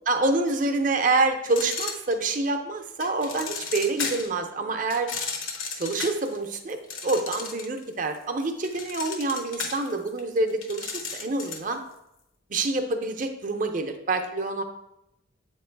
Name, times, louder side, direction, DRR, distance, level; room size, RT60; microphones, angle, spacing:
voice 1, 0.1-5.1 5.8-11.8 12.5-14.6, right 2 dB, 40° right, 5 dB, 0.6 m, -27 dB
sound 1, 1.5-2.5 3.0-4.4 4.9-7.8 8.1-11.7, left 5 dB, 80° left, 0.8 m, -34 dB
7.7 x 3.0 x 4.5 m, 0.86 s
head